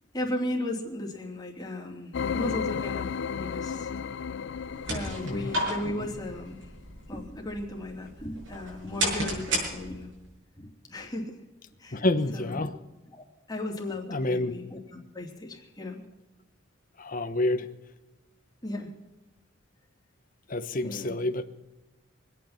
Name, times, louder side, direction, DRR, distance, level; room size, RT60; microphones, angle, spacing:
voice 1, 0.1-3.9 4.9-6.6 7.1-10.1 10.6-11.4 11.8-12.0 12.3-12.7 13.1-16.0 18.6-18.9 20.8-21.1, left 1 dB, 20° left, 0 dB, 3.1 m, -36 dB
sound 1, 2.1-6.4, left 6 dB, 65° left, 0.4 m, -34 dB
sound 2, 4.5-10.3, right 1 dB, 80° right, 6.6 m, -34 dB
voice 2, 11.9-12.7 14.1-14.5 17.0-17.7 20.5-21.4, left 2 dB, 45° left, 9 dB, 1.1 m, -28 dB
24.5 x 9.3 x 5.9 m, 1.1 s
head